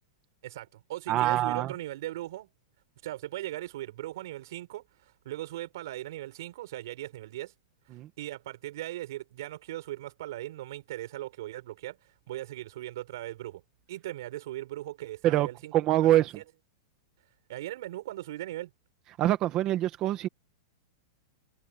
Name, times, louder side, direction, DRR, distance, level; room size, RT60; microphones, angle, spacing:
voice 1, 0.4-2.5 3.0-7.5 8.2-12.0 12.3-13.6 13.9-16.4 17.5-18.7, right 15 dB, 50° right, 5.8 m, -39 dB
voice 2, 1.1-1.7 7.9-8.1 15.2-15.5 15.7-16.3 19.2-20.3, right 13 dB, 20° right, 1.6 m, -24 dB
supercardioid pair, 180°, 2 cm